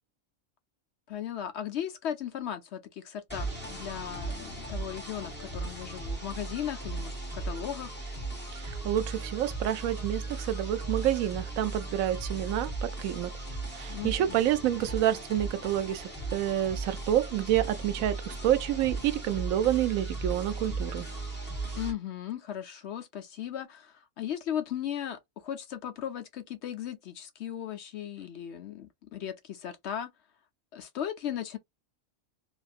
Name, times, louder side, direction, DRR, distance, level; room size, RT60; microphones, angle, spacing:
voice 1, 1.1-7.9 13.9-14.4 21.7-30.1 30.7-31.6, left 10 dB, 65° left, 0.8 m, -37 dB
sound 1, 3.3-21.9, right 3 dB, 10° left, 1.3 m, -37 dB
voice 2, 8.5-13.3 13.7-21.1, right 12 dB, 85° right, 1.0 m, -28 dB
2.9 x 2.5 x 2.4 m
omnidirectional pair, 1.4 m